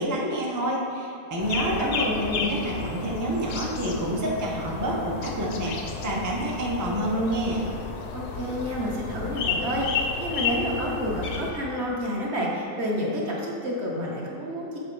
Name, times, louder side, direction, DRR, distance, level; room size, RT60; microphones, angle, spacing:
voice 1, 0.0-2.1 2.3-7.6, right 1 dB, 30° right, -3 dB, 0.3 m, -28 dB
sound 1, 1.4-11.5, left 5 dB, 80° left, 1.1 m, -32 dB
voice 2, 1.7-2.4 8.1-14.8, equal, 50° right, -3 dB, 1.1 m, -29 dB
6.8 x 3.9 x 4.5 m, 2.7 s
omnidirectional pair, 1.6 m